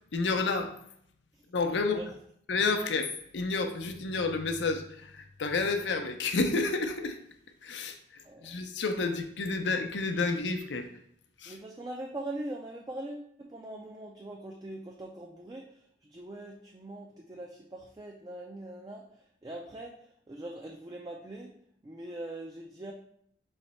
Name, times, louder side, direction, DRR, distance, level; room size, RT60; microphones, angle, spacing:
voice 1, 0.1-0.7 1.5-2.0 2.5-7.2 7.6-10.9 11.4-11.6, left 3 dB, 85° left, 6 dB, 0.6 m, -30 dB
voice 2, 8.2-8.6 11.5-19.1 19.4-21.5 21.8-22.9, right 1 dB, 20° right, 1 dB, 0.3 m, -42 dB
4.0 x 3.2 x 4.1 m, 0.69 s
head